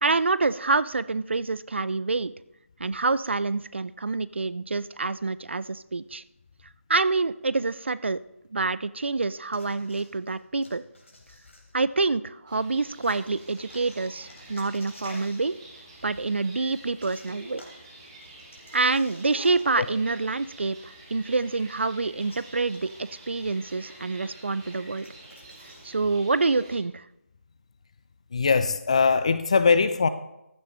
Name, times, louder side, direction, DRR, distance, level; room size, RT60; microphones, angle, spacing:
voice 1, 0.0-2.3 2.8-6.2 6.9-8.2 8.5-10.8 11.7-15.6 16.0-17.6 18.7-25.1 25.8-27.0, right 3 dB, 50° right, 17 dB, 0.4 m, -27 dB
sound 1, 9.5-12.2 13.0-15.5 17.0-19.9 20.2-20.3 22.2-25.9, left 1 dB, 60° left, 3.6 m, -53 dB
sound 2, 12.5-26.8, right 1 dB, 20° right, 2.2 m, -48 dB
voice 2, 28.3-30.1, left 5 dB, 25° left, 13 dB, 0.4 m, -21 dB
14.5 x 9.6 x 3.0 m, 0.85 s
figure-of-eight pair, 160°, 8 cm